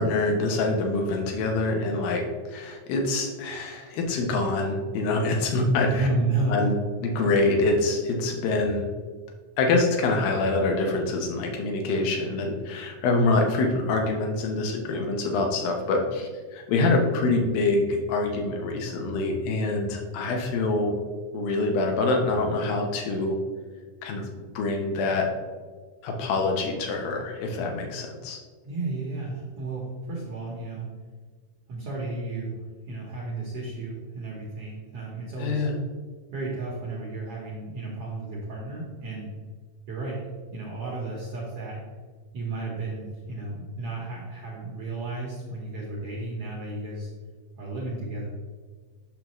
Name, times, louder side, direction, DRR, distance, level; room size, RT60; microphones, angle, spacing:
voice 1, 0.0-2.2 2.5-6.1 6.5-6.7 7.0-8.9 9.6-21.0 21.3-23.4 24.0-24.3 24.5-25.3 26.0-28.4 35.4-35.7, left 2 dB, 80° left, 2 dB, 2.7 m, -25 dB
voice 2, 5.9-6.7 28.6-30.9 31.7-32.5 32.9-35.7 36.3-39.3 39.9-40.2 40.5-41.8 42.3-47.1 47.6-48.3, right 2 dB, 60° right, -4 dB, 1.6 m, -32 dB
8.7 x 6.2 x 3.1 m, 1.5 s
omnidirectional pair, 4.1 m